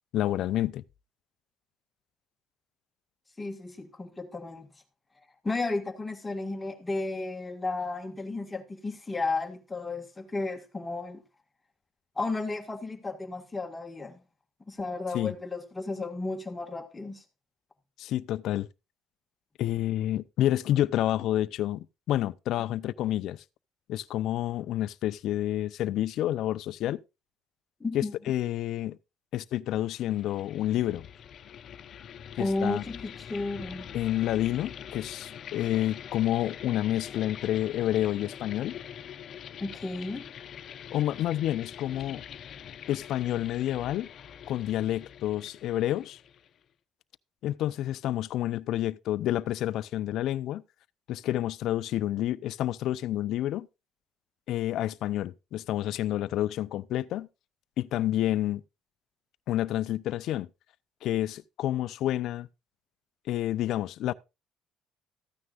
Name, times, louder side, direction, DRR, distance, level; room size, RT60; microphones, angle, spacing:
voice 1, 0.1-0.8 15.1-15.3 18.0-18.7 19.6-23.4 23.9-27.0 27.9-29.0 29.3-31.1 32.4-32.8 33.9-38.8 40.9-42.2 42.9-44.1 44.5-46.2 47.4-50.6 51.1-53.7 54.5-57.3 57.8-58.6 59.5-60.5 61.0-62.5 63.3-64.1, left 13 dB, 65° left, 0.5 m, -29 dB
voice 2, 3.4-4.7 5.4-11.2 12.2-14.2 14.7-17.2 27.8-28.1 32.4-33.9 39.6-40.2, left 3 dB, 15° left, 1.7 m, -33 dB
sound 1, 29.9-46.6, left 9 dB, 50° left, 0.9 m, -44 dB
14.0 x 9.6 x 2.4 m
cardioid pair, 125°, 0 cm